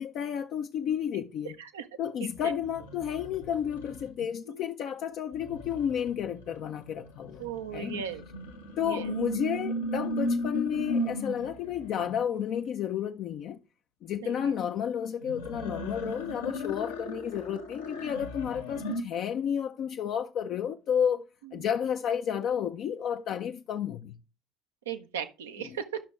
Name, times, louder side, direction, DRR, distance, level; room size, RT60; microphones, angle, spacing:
voice 1, 0.0-1.6 2.0-8.0 8.8-13.6 14.0-21.2 21.5-24.2 25.6-25.7, left 8 dB, 55° left, 0.5 m, -31 dB
sound 1, 2.3-4.3 5.3-12.1 15.2-19.0, equal, 85° left, 1.2 m, -36 dB
voice 2, 4.5-4.8 7.4-8.2 8.9-9.1 14.2-14.5 17.1-17.2 24.9-26.0, right 8 dB, 80° right, 0.7 m, -37 dB
11.5 x 5.9 x 3.2 m
figure-of-eight pair, 55°, 0 cm